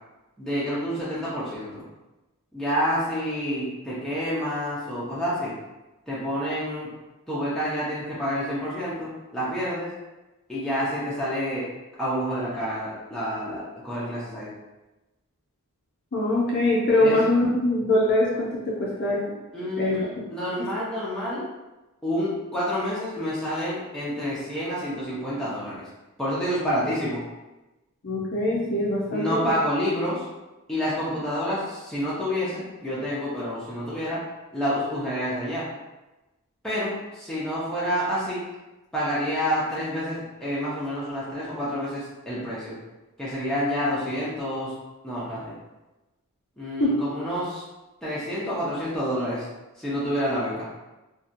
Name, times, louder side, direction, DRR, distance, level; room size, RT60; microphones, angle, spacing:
voice 1, 0.4-1.8 2.5-5.6 6.1-6.9 7.3-9.9 10.5-11.7 12.0-14.5 17.0-17.2 19.5-21.5 22.0-25.9 26.2-27.2 29.1-30.2 30.7-34.2 34.5-35.7 36.6-38.5 38.9-42.8 43.2-44.7 45.0-45.6 46.6-47.6 48.0-49.5 49.8-50.7, equal, ahead, -10 dB, 0.5 m, -28 dB
voice 2, 16.1-19.2 19.8-20.2 28.0-29.3 46.8-47.0, left 1 dB, 50° left, -5 dB, 0.5 m, -23 dB
2.7 x 2.2 x 2.5 m, 1.1 s
head